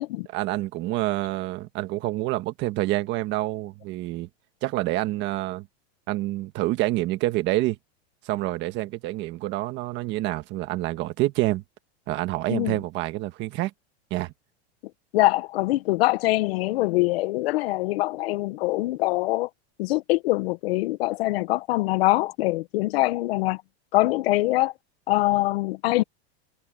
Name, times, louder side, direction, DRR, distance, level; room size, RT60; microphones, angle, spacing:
voice 1, 0.3-4.3 4.6-5.7 6.1-7.8 8.2-11.6 12.1-13.7 14.1-14.3, right 17 dB, 35° right, 1.4 m, -27 dB
voice 2, 15.1-19.5 19.8-23.6 23.9-24.7 25.1-26.0, left 19 dB, 65° left, 0.9 m, -23 dB
supercardioid pair, 170°, 32 cm